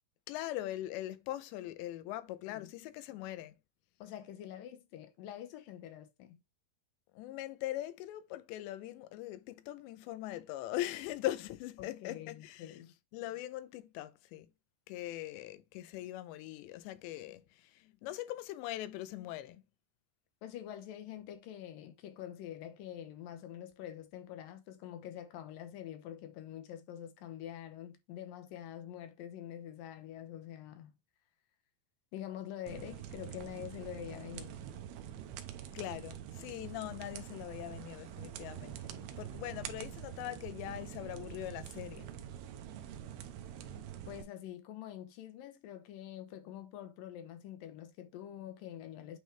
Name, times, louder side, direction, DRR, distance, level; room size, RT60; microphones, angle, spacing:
voice 1, 0.3-3.6 7.1-12.8 13.1-14.5 14.9-19.6 35.7-42.1, left 14 dB, 90° left, 2.9 m, -41 dB
voice 2, 4.0-6.4 11.8-12.9 20.4-30.9 32.1-34.7 44.1-49.2, left 11 dB, 70° left, 2.2 m, -46 dB
sound 1, 32.7-44.2, right 10 dB, 75° right, 2.5 m, -46 dB
9.0 x 3.6 x 3.3 m
omnidirectional pair, 5.0 m